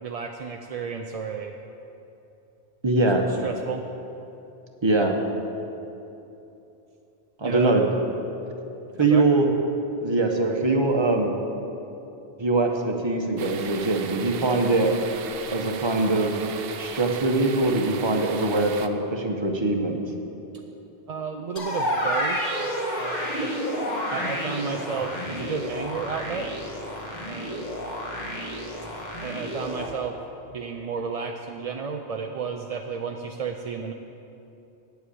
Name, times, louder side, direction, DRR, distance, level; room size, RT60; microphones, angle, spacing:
voice 1, 0.0-1.6 3.4-3.9 7.4-7.7 8.9-9.3 21.1-22.4 23.0-23.5 24.1-26.5 27.2-27.6 29.2-30.2 30.5-33.9, right 6 dB, 50° right, 3 dB, 0.5 m, -32 dB
voice 2, 2.8-3.2 4.8-5.2 7.4-7.8 9.0-9.5 10.0-11.3 12.4-14.9 15.5-16.3 16.8-20.0, right 2 dB, 25° right, 3 dB, 1.0 m, -22 dB
sound 1, 13.4-18.9, right 7 dB, 65° right, 0.8 m, -37 dB
sound 2, 21.6-29.9, equal, 40° left, 1.6 m, -30 dB
9.3 x 7.8 x 8.4 m, 2.9 s
omnidirectional pair, 1.1 m